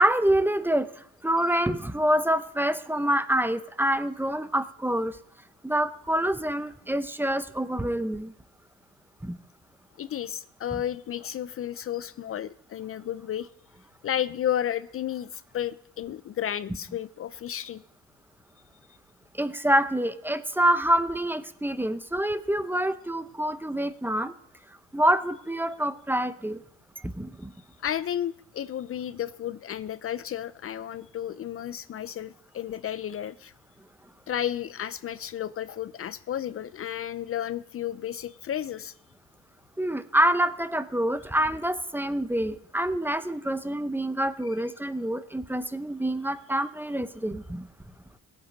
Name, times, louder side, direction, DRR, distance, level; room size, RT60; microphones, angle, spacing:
voice 1, 0.0-5.2 5.6-8.3 9.2-9.4 10.7-10.8 19.3-24.3 24.9-26.6 27.0-27.5 39.8-47.7, right 1 dB, 5° right, 12 dB, 0.8 m, -26 dB
voice 2, 10.0-13.5 14.0-17.8 27.8-33.5 34.3-38.9, left 10 dB, 50° left, 16 dB, 0.5 m, -32 dB
17.5 x 8.2 x 5.1 m, 0.72 s
cardioid pair, 90°, 30 cm